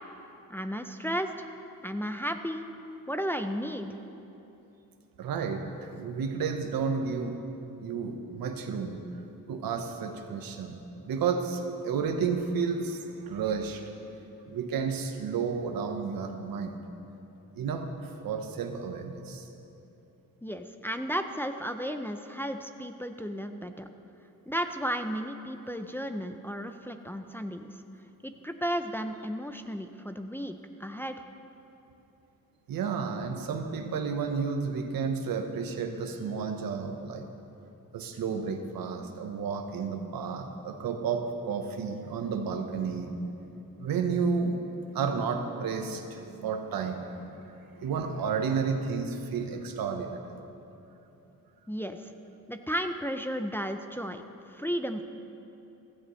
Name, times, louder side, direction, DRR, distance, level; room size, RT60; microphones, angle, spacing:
voice 1, 0.5-1.5 1.8-2.6 3.1-3.9 20.4-23.9 24.5-27.7 28.2-30.5 30.8-31.2 51.7-52.0 52.5-54.2 54.5-55.0, equal, 5° left, 6 dB, 0.5 m, -33 dB
voice 2, 5.2-7.4 7.8-9.1 9.5-13.8 14.5-16.8 17.5-19.5 32.7-37.3 37.9-43.2 43.8-44.6 44.9-50.3, right 5 dB, 80° right, 5 dB, 1.1 m, -32 dB
15.0 x 13.5 x 3.2 m, 3.0 s
cardioid pair, 95°, 34 cm